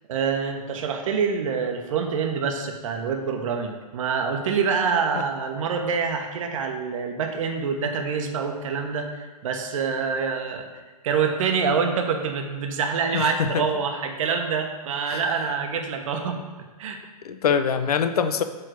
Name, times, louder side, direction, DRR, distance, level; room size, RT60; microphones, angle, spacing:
voice 1, 0.1-10.6 11.0-16.4 16.8-17.0, right 6 dB, 55° right, 4 dB, 1.1 m, -26 dB
voice 2, 13.1-13.7 15.1-15.2 17.2-18.4, left 7 dB, 70° left, 10 dB, 0.7 m, -24 dB
8.0 x 3.8 x 6.2 m, 1.3 s
hypercardioid pair, 130°, 20 cm